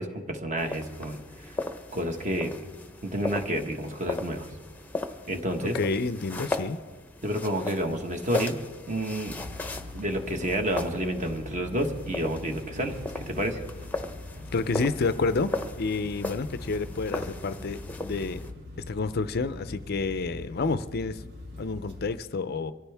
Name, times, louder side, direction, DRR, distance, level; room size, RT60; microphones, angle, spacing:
voice 1, 0.0-1.6 1.9-2.5 3.0-4.5 5.3-5.8 7.2-8.6 8.9-9.4 9.9-13.6, right 1 dB, 35° right, 4 dB, 1.4 m, -30 dB
sound 1, 0.6-18.5, left 2 dB, 10° left, 0.8 m, -37 dB
voice 2, 5.6-6.8 14.5-15.5 15.8-18.4 18.9-21.2 21.6-22.7, left 3 dB, 50° left, 13 dB, 0.5 m, -29 dB
sound 2, 9.3-22.1, left 2 dB, 55° right, 1.9 m, -42 dB
23.5 x 14.5 x 3.5 m, 1.3 s
head